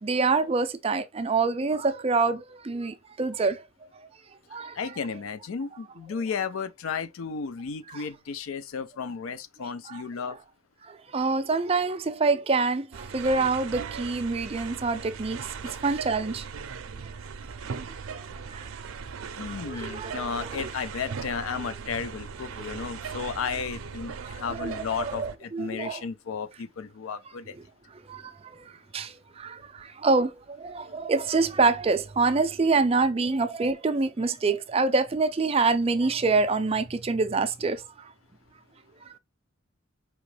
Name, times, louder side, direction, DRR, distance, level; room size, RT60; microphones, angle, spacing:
voice 1, 0.0-3.6 4.5-4.8 7.9-8.0 9.9-10.0 10.8-16.4 18.5-18.7 19.4-20.6 22.6-22.8 24.2-26.0 28.1-38.1 39.0-39.1, right 4 dB, 30° right, 0.4 m, -26 dB
voice 2, 4.8-10.4 15.6-15.8 19.4-27.5, left 6 dB, 80° left, 0.4 m, -34 dB
sound 1, 12.9-25.4, right 6 dB, 85° right, 0.5 m, -38 dB
4.9 x 3.0 x 3.2 m
head